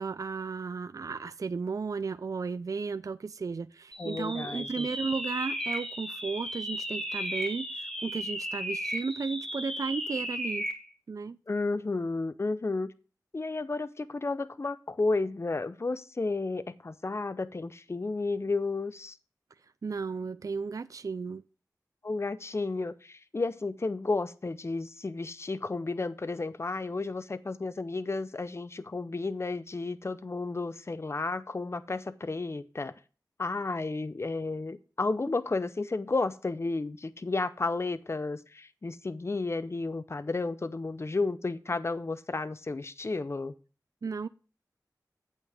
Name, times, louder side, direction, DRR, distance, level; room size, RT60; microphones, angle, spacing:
voice 1, 0.0-10.7 11.1-11.4 19.8-21.4 44.0-44.3, right 4 dB, 55° right, 0.3 m, -34 dB
sound 1, 3.9-10.9, equal, 5° left, 1.8 m, -35 dB
voice 2, 4.0-4.9 11.5-12.9 13.3-19.2 22.0-32.9 33.4-43.5, left 3 dB, 40° left, 0.6 m, -32 dB
8.5 x 8.3 x 3.5 m
wide cardioid pair, 70°, 7 cm